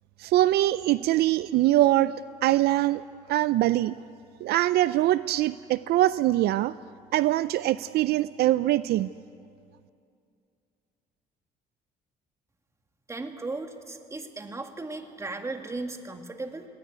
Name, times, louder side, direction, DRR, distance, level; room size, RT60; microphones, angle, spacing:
voice 1, 0.2-2.1 2.4-3.0 3.3-4.0 4.4-6.7 7.1-9.1, right 15 dB, 70° right, 16 dB, 0.4 m, -23 dB
voice 2, 13.1-16.7, right 3 dB, 15° right, 5 dB, 2.1 m, -36 dB
19.5 x 19.5 x 9.3 m, 2.4 s
cardioid pair, 110°, 17 cm